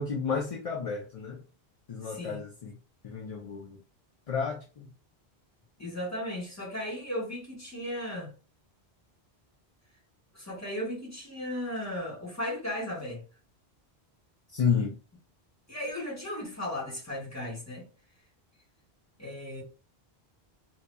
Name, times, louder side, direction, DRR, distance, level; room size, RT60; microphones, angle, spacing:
voice 1, 0.0-1.4 1.9-2.7 3.0-3.8 4.3-4.9 14.5-15.0, left 6 dB, 45° left, 0.6 m, -31 dB
voice 2, 2.0-2.4 5.8-8.3 10.3-13.2 15.7-17.9 19.2-19.6, left 1 dB, 15° left, 1.4 m, -36 dB
3.8 x 2.8 x 2.2 m
omnidirectional pair, 1.1 m